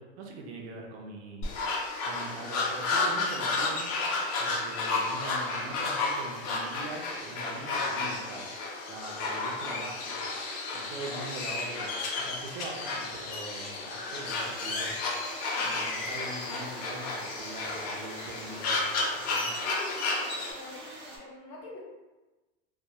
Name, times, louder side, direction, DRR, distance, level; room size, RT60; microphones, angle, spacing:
voice 1, 0.0-1.5 2.0-3.9 4.4-8.5 8.9-10.3 10.7-11.9 12.2-15.0 15.6-18.9 19.1-19.5, right 2 dB, 90° right, 0 dB, 0.6 m, -42 dB
sound 1, 1.4-20.5, left 3 dB, 55° left, 0.6 m, -32 dB
sound 2, 14.3-21.2, right 1 dB, 35° right, 0.8 m, -46 dB
voice 2, 19.6-21.8, left 2 dB, 75° left, -3 dB, 1.0 m, -45 dB
2.3 x 2.1 x 2.7 m, 1.1 s
supercardioid pair, 115°, 32 cm